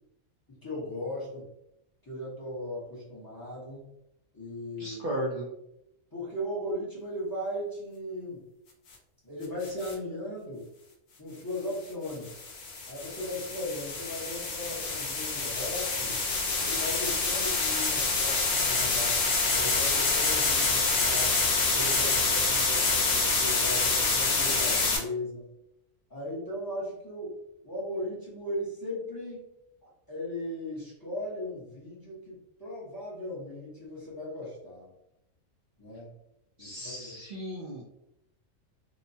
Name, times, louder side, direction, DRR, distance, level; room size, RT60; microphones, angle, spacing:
voice 1, 0.5-1.5 2.0-3.9 4.3-5.0 6.1-8.4 9.2-10.7 11.2-12.3 12.9-16.2 16.6-19.2 19.5-25.5 26.1-27.4 27.6-29.4 29.8-34.9 35.8-36.1 36.6-37.2, left 1 dB, 20° left, -7 dB, 0.7 m, -37 dB
voice 2, 4.8-5.5 36.6-37.8, equal, 80° right, -3 dB, 0.4 m, -35 dB
sound 1, 9.6-9.9 12.1-25.0, left 3 dB, 60° left, 0.8 m, -27 dB
2.8 x 2.1 x 2.6 m, 0.82 s
omnidirectional pair, 1.4 m